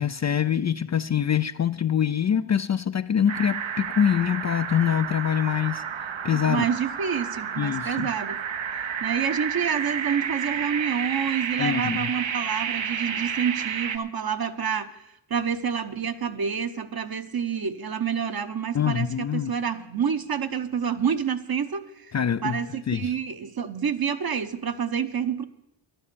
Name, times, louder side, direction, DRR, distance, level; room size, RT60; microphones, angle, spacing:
voice 1, 0.0-5.8 6.2-6.6 7.6-8.1 11.6-12.1 18.7-19.5 22.1-22.6 22.9-23.1, left 8 dB, 35° left, 0.4 m, -24 dB
sound 1, 3.3-14.0, right 7 dB, 70° right, 1.0 m, -31 dB
voice 2, 6.3-8.4 9.0-15.0 15.3-22.1 22.4-25.4, right 7 dB, 50° right, 1.0 m, -28 dB
11.5 x 11.0 x 6.9 m
cardioid pair, 60°, 49 cm